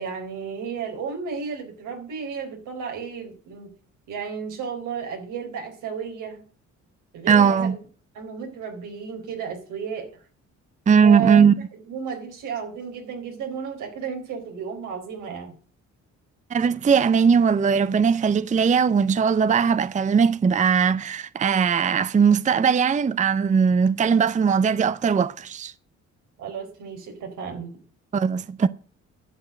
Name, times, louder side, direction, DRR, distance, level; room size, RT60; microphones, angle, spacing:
voice 1, 0.0-3.7 4.1-6.4 7.1-7.8 8.1-10.1 11.0-15.6 26.4-27.7, right 7 dB, 90° right, 4.2 m, -33 dB
voice 2, 7.3-7.7 10.9-11.5 16.5-25.7 28.1-28.7, right 6 dB, 25° right, 0.5 m, -19 dB
11.0 x 7.2 x 7.9 m
cardioid pair, 90°, 30 cm